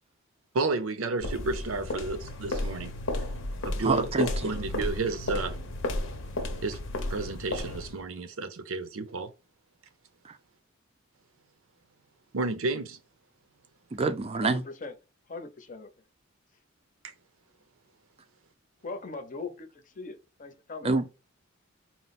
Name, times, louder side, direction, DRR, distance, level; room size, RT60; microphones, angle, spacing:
voice 1, 0.5-2.9 3.6-5.6 6.6-6.8 7.1-9.3 12.3-13.0 17.0-17.1, right 3 dB, 80° right, 0.6 m, -31 dB
sound 1, 1.2-8.0, left 1 dB, 75° left, 0.8 m, -33 dB
voice 2, 3.8-4.3 10.2-10.4 13.9-14.6 20.8-21.2, right 3 dB, 30° right, 0.4 m, -26 dB
voice 3, 14.4-15.0 15.3-15.9 18.8-20.9, left 3 dB, 40° left, 0.7 m, -40 dB
4.2 x 2.1 x 4.0 m
head